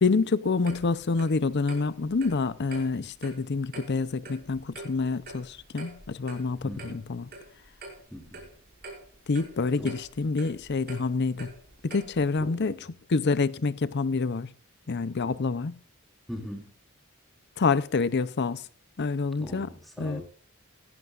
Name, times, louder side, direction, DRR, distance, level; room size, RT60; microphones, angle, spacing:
voice 1, 0.0-7.3 9.3-11.5 11.8-12.8 13.1-14.5 14.9-15.8 17.6-18.6 19.0-19.7 20.0-20.2, left 4 dB, 55° left, 0.6 m, -27 dB
Clock, 0.6-12.4, right 2 dB, 50° right, 5.5 m, -46 dB
voice 2, 6.6-7.1 8.1-8.4 9.8-10.0 12.4-12.8 16.3-16.7 19.4-20.2, equal, ahead, 3.9 m, -40 dB
17.0 x 15.0 x 2.5 m
head